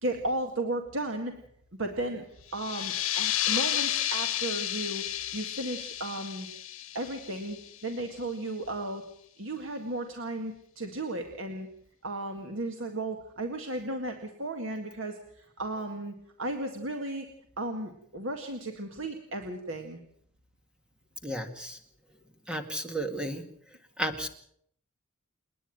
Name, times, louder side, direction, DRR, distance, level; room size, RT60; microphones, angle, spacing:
voice 1, 0.0-1.3 1.8-2.2 2.5-5.0 5.3-6.5 6.9-7.6 7.8-9.0 9.4-11.7 12.0-17.3 17.6-20.0, right 1 dB, 60° right, 4 dB, 1.9 m, -34 dB
sound 1, 2.5-7.9, left 12 dB, 65° left, 1.9 m, -32 dB
voice 2, 21.2-21.8 22.5-23.4 24.0-24.3, right 1 dB, 5° right, 6 dB, 2.0 m, -33 dB
29.0 x 10.0 x 9.1 m, 0.67 s
head